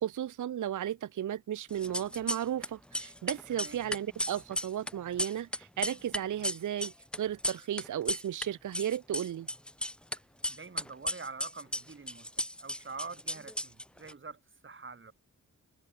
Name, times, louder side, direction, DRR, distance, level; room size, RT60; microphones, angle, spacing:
voice 1, 0.0-9.5, right 11 dB, 65° right, 0.5 m, -34 dB
sound 1, 1.7-2.7 2.9-8.5 8.7-10.2 10.4-14.1, left 1 dB, 5° left, 0.4 m, -35 dB
voice 2, 10.5-15.1, right 4 dB, 35° right, 1.7 m, -46 dB
wide cardioid pair, 130°, 33 cm